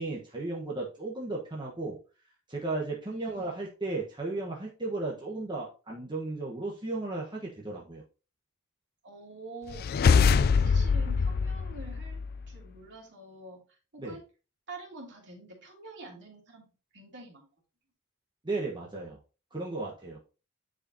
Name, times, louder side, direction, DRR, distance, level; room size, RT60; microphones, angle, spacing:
voice 1, 0.0-2.0 2.5-8.0 14.0-14.2 18.4-19.2 19.5-20.2, right 2 dB, 20° right, -3 dB, 1.3 m, -35 dB
voice 2, 3.1-3.5 9.0-14.2 14.7-17.5, right 3 dB, 55° right, -1 dB, 2.8 m, -47 dB
sound 1, 9.7-12.5, left 5 dB, 45° left, 0.3 m, -24 dB
9.9 x 5.0 x 2.8 m, 0.33 s
head